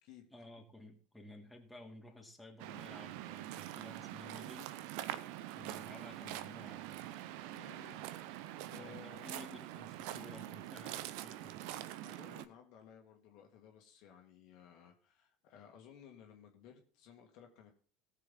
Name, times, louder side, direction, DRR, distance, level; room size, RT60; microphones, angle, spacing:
voice 1, 0.3-4.8 5.5-7.0 8.8-11.6, left 1 dB, 5° left, 0 dB, 2.7 m, -54 dB
Waves surf, 2.6-12.5, right 13 dB, 60° right, 0.6 m, -45 dB
voice 2, 7.5-8.0 8.7-9.3 12.0-17.7, left 8 dB, 55° left, 2 dB, 1.9 m, -57 dB
18.5 x 6.7 x 3.9 m, 0.40 s
figure-of-eight pair, 75°, 0 cm